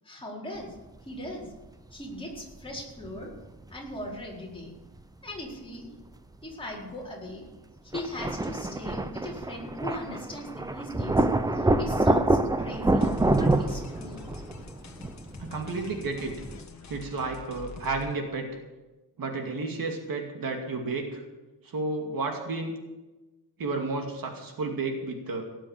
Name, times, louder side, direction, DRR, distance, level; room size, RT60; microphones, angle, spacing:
voice 1, 0.0-0.7 1.0-1.5 1.9-3.3 3.7-4.7 5.2-5.9 6.4-7.4 7.9-11.3 11.5-14.2, left 1 dB, 15° left, -4 dB, 4.6 m, -39 dB
sound 1, 1.5-1.7 2.4-3.2 3.6-4.6 5.0-5.1 7.9-16.6, right 2 dB, 10° right, 0.6 m, -27 dB
sound 2, 13.0-18.2, left 4 dB, 45° left, 1.6 m, -45 dB
voice 2, 15.4-16.3 16.9-18.5 19.2-21.2 21.6-22.7 23.6-25.4, right 3 dB, 55° right, 2 dB, 2.5 m, -32 dB
18.0 x 7.6 x 8.9 m, 1.1 s
wide cardioid pair, 145°, 40 cm